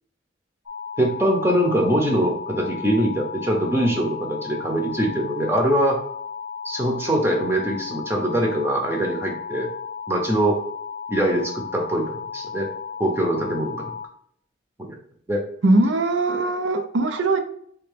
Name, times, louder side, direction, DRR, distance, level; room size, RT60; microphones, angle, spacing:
sound 1, 0.7-14.1, left 6 dB, 80° left, 0.6 m, -34 dB
voice 1, 1.0-6.0 6.6-9.7 10.1-10.6 11.1-12.7 13.0-14.0 14.8-14.9 15.3-15.4, right 1 dB, 15° right, 1 dB, 0.7 m, -23 dB
voice 2, 15.6-17.4, right 2 dB, 85° right, 6 dB, 0.6 m, -20 dB
3.5 x 2.9 x 3.3 m, 0.66 s
head